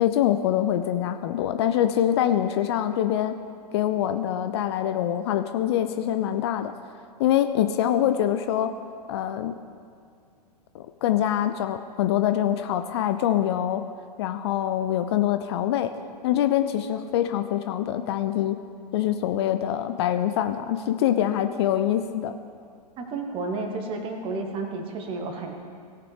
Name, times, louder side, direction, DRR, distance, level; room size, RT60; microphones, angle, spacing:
voice 1, 0.0-3.3 3.7-6.7 7.2-8.7 9.1-9.5 10.7-13.8 14.2-15.9 16.2-18.6 18.9-22.3, left 11 dB, 40° left, 8 dB, 0.5 m, -24 dB
voice 2, 23.0-25.5, right 3 dB, 25° right, 4 dB, 1.3 m, -31 dB
17.5 x 5.8 x 5.0 m, 2.2 s
figure-of-eight pair, 105°, 21 cm